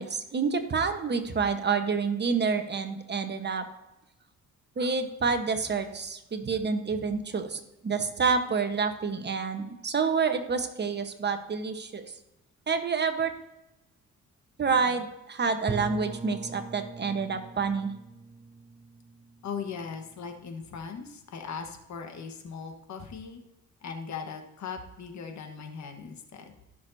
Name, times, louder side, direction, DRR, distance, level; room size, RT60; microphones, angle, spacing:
voice 1, 0.0-3.7 4.8-12.1 12.7-13.3 14.6-17.9, right 5 dB, 35° right, 7 dB, 1.2 m, -28 dB
Bowed string instrument, 15.7-20.5, right 4 dB, 15° right, 0.4 m, -41 dB
voice 2, 19.4-23.4 23.8-26.5, left 6 dB, 65° left, 5 dB, 1.4 m, -39 dB
15.5 x 6.4 x 2.7 m, 0.94 s
cardioid pair, 90°, 30 cm